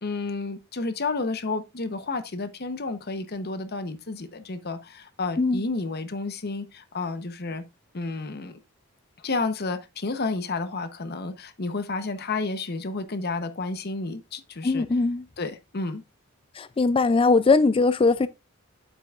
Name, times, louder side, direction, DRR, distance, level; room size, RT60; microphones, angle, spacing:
voice 1, 0.0-7.6 7.9-8.6 9.2-14.9 15.4-16.0, left 3 dB, 50° left, 0.9 m, -31 dB
voice 2, 14.6-15.2 16.6-18.3, left 3 dB, 25° left, 0.4 m, -20 dB
9.1 x 7.9 x 2.4 m
head